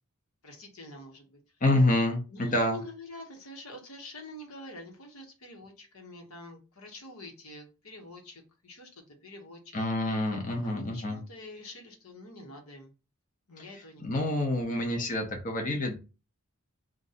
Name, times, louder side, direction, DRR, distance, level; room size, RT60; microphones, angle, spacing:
voice 1, 0.4-1.4 2.3-9.8 10.6-12.9 13.5-14.5, left 1 dB, 85° left, 2 dB, 1.3 m, -46 dB
voice 2, 1.6-2.8 9.7-11.2 14.0-16.0, left 1 dB, 40° left, 2 dB, 0.7 m, -27 dB
3.8 x 2.5 x 4.1 m, 0.31 s
head